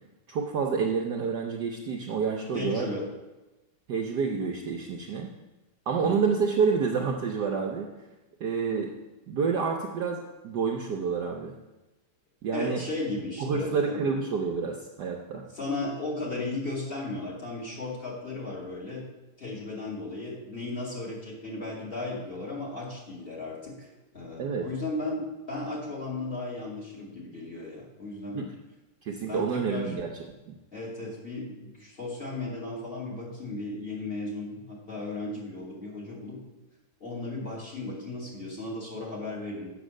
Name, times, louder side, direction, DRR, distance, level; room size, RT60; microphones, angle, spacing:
voice 1, 0.3-2.9 3.9-5.3 5.9-7.9 8.4-8.9 9.3-11.5 12.4-12.8 13.4-15.4 24.4-24.7 28.3-28.5 29.0-30.1 30.5-30.6, right 5 dB, 60° right, 1 dB, 1.2 m, -28 dB
voice 2, 2.5-3.0 6.0-6.2 12.5-14.0 15.5-19.0 19.4-23.9 24.1-28.4 29.3-29.9 30.7-36.4 37.0-39.7, left 2 dB, 25° left, -3 dB, 2.4 m, -35 dB
8.2 x 6.7 x 6.3 m, 1.1 s
omnidirectional pair, 2.4 m